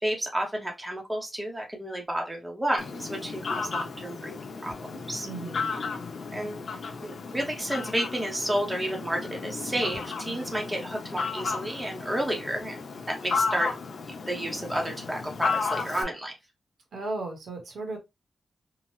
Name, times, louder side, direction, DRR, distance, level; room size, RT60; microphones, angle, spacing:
voice 1, 0.0-4.3 4.6-5.3 6.3-6.6 7.0-13.7 14.3-16.4, right 1 dB, 10° right, 0.7 m, -31 dB
Fowl, 2.8-16.0, left 5 dB, 70° left, 0.6 m, -34 dB
voice 2, 5.2-5.7 16.9-18.0, right 2 dB, 80° right, 0.9 m, -35 dB
2.8 x 2.0 x 3.0 m
wide cardioid pair, 130°, 0 cm